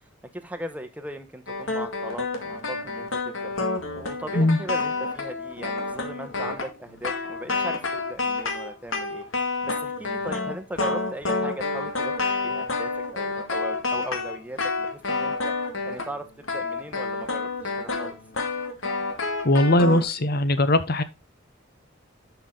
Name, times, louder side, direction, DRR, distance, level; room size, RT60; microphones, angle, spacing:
voice 1, 0.3-3.1 3.4-3.5 3.9-9.2 9.6-12.1 12.4-15.5 15.8-18.2, right 1 dB, 10° right, 1.0 m, -38 dB
sound 1, 1.5-16.2 16.4-20.0, left 3 dB, 75° left, 2.2 m, -29 dB
voice 2, 19.4-21.0, left 1 dB, 50° left, 0.9 m, -20 dB
11.0 x 5.8 x 3.8 m
head